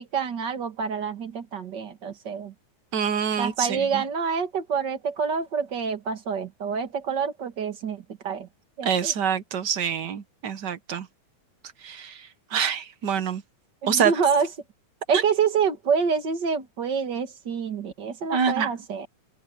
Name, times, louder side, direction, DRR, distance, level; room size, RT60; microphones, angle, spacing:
voice 1, 0.0-2.5 3.4-8.5 8.8-9.1 13.8-14.5 15.1-19.1, right 6 dB, 40° right, 2.2 m, -27 dB
voice 2, 2.9-4.0 8.8-11.1 11.8-13.4 13.9-14.1 18.3-18.7, right 7 dB, 55° right, 1.2 m, -26 dB
open air
omnidirectional pair, 3.3 m